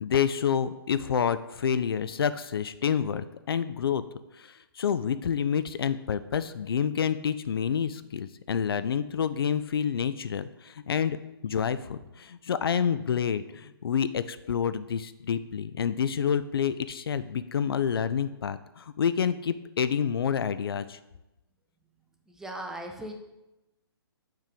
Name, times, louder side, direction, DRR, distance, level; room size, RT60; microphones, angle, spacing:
voice 1, 0.0-4.0 4.4-21.0, left 7 dB, 65° left, 13 dB, 0.4 m, -28 dB
voice 2, 22.3-23.1, right 1 dB, 5° right, 2 dB, 0.5 m, -38 dB
7.4 x 3.7 x 5.2 m, 0.98 s
figure-of-eight pair, 135°, 13 cm